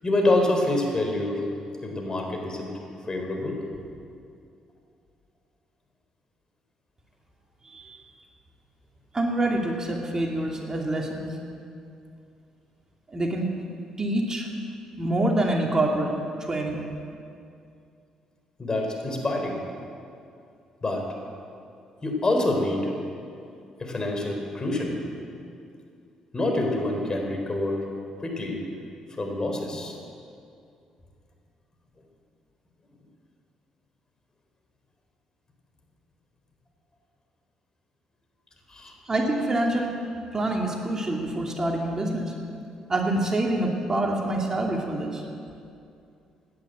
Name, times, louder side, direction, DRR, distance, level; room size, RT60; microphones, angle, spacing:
voice 1, 0.0-1.4 1.8-2.8 3.1-3.5 18.6-19.6 20.8-21.0 22.0-22.8 23.8-25.0 26.3-27.9 28.2-28.6 29.2-30.0 38.7-38.9, left 2 dB, 35° left, 2 dB, 3.9 m, -26 dB
voice 2, 7.6-8.0 9.1-11.4 13.1-13.5 14.0-14.5 15.0-16.1 16.4-16.9 39.1-39.9 40.3-42.3 42.9-45.2, right 1 dB, 30° right, 0 dB, 2.5 m, -26 dB
16.5 x 10.5 x 8.0 m, 2.5 s
supercardioid pair, 55°, 2 cm